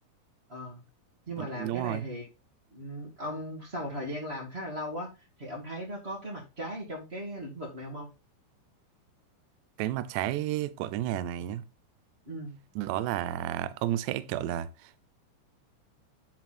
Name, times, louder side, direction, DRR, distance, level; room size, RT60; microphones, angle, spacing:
voice 1, 0.5-0.8 1.3-2.3 2.7-5.1 5.4-8.1 12.2-12.6, equal, 60° right, 0.6 m, -37 dB
voice 2, 1.4-2.0 9.8-11.6 12.8-14.7, right 13 dB, 80° right, 2.6 m, -31 dB
10.5 x 4.3 x 4.2 m
omnidirectional pair, 5.7 m